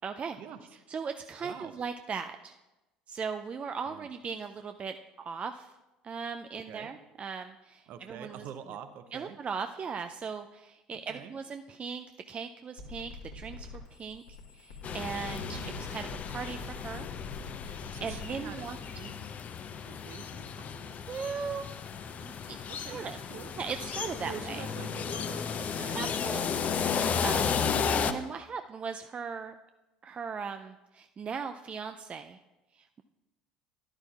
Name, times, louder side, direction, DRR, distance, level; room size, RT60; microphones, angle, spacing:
voice 1, 0.0-0.4 0.9-2.5 3.1-5.7 6.0-8.4 9.1-14.2 14.5-17.1 17.6-18.8 21.1-21.6 22.2-23.2 23.6-24.6 25.9-27.6 28.0-29.5 30.0-32.4, right 5 dB, 30° right, 7 dB, 0.4 m, -38 dB
voice 2, 1.4-1.7 3.9-4.1 6.7-6.9 7.9-9.4 11.1-11.3 17.9-18.7 18.9-19.1 19.9-20.9 22.7-23.5 24.3-26.0 27.6-27.9, right 8 dB, 50° right, 9 dB, 0.8 m, -46 dB
sound 1, 12.8-18.3, left 3 dB, 70° left, 1.6 m, -44 dB
sound 2, 14.8-28.1, left 6 dB, 40° left, 0.6 m, -34 dB
13.0 x 11.0 x 2.4 m, 1.0 s
figure-of-eight pair, 65°, 4 cm